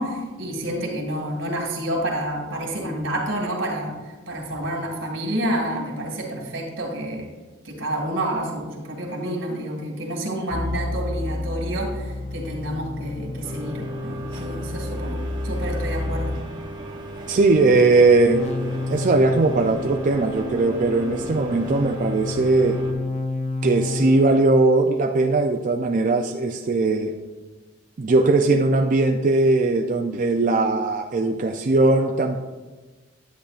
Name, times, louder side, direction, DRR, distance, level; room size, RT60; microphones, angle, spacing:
voice 1, 0.0-3.9 4.3-7.3 7.6-16.4, right 1 dB, 90° right, 0 dB, 2.1 m, -29 dB
sound 1, 10.5-16.4 18.3-24.4, left 2 dB, 35° left, 0.5 m, -30 dB
sound 2, 13.4-22.9, right 1 dB, 25° right, 0.8 m, -36 dB
voice 2, 17.3-18.5 18.9-22.8 23.6-27.1 28.0-32.4, right 3 dB, 45° right, 3 dB, 0.4 m, -19 dB
10.0 x 8.6 x 2.4 m, 1.3 s
head